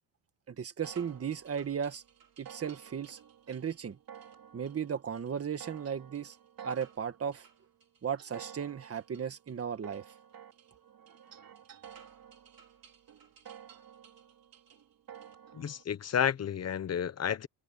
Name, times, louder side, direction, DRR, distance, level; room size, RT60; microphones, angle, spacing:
voice 1, 0.5-2.0 2.4-3.2 3.5-4.0 4.5-6.4 6.6-7.5 8.0-10.0, right 7 dB, 30° right, 1.7 m, -36 dB
sound 1, 0.8-15.8, right 9 dB, 45° right, 3.8 m, -53 dB
voice 2, 15.6-17.5, left 8 dB, 30° left, 0.9 m, -31 dB
cardioid pair, 145°, 48 cm